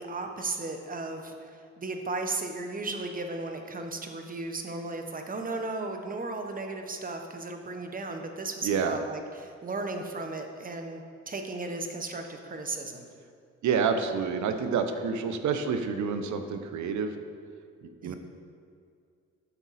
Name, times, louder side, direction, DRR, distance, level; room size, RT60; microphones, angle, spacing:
voice 1, 0.0-13.1 18.0-18.2, right 3 dB, 30° right, 5 dB, 1.0 m, -35 dB
voice 2, 8.6-9.0 13.6-17.2 17.8-18.1, right 6 dB, 70° right, 8 dB, 0.8 m, -28 dB
9.9 x 6.0 x 4.1 m, 2.3 s
cardioid pair, 90°, 30 cm